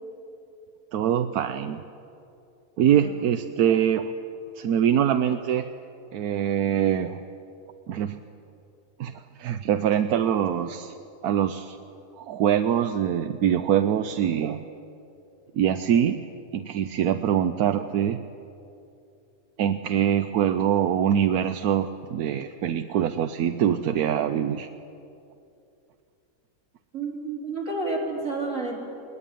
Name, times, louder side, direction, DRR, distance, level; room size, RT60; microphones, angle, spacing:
voice 1, 0.9-1.8 2.8-4.1 4.6-5.7 6.1-7.2 7.9-8.2 9.0-10.9 11.2-11.8 12.2-14.6 15.5-16.2 16.5-18.2 19.6-24.7, right 9 dB, 85° right, 9 dB, 1.2 m, -24 dB
voice 2, 2.9-3.3 26.9-28.8, right 3 dB, 55° right, -2 dB, 4.5 m, -30 dB
20.5 x 19.5 x 9.2 m, 2.6 s
omnidirectional pair, 1.6 m